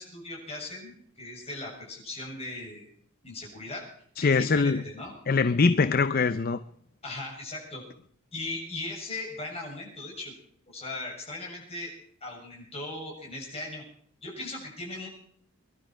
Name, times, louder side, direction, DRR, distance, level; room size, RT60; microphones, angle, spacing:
voice 1, 0.0-2.9 3.2-3.9 4.2-5.2 7.0-7.8 8.3-10.3 10.7-11.9 12.2-13.8 14.2-15.1, left 2 dB, 30° left, -1 dB, 6.9 m, -38 dB
voice 2, 4.2-4.8 5.3-6.6, left 4 dB, 45° left, 13 dB, 0.5 m, -23 dB
24.5 x 12.0 x 4.4 m, 0.63 s
head